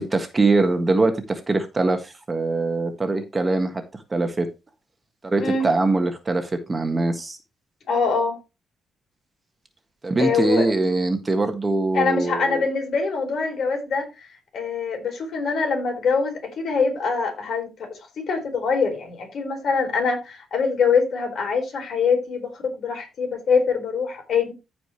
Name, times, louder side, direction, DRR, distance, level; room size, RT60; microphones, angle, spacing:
voice 1, 0.0-3.8 4.1-4.5 5.2-7.4 10.0-12.6, right 3 dB, 25° right, 1.6 m, -22 dB
voice 2, 7.9-8.4 10.2-10.7 11.9-14.1 14.5-17.9 18.2-24.5, left 5 dB, 60° left, 4.6 m, -24 dB
15.0 x 5.1 x 3.2 m
cardioid pair, 125°, 0 cm